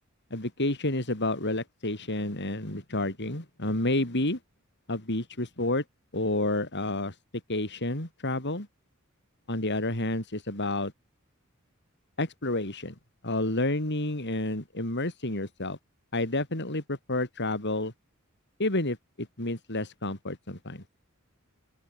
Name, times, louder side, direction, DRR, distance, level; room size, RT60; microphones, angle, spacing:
voice 1, 0.3-4.4 4.9-5.8 6.1-7.2 7.5-8.7 9.5-10.9 12.2-13.0 13.2-15.8 16.1-17.9 18.6-20.8, left 2 dB, 55° left, 5.2 m, -30 dB
open air
head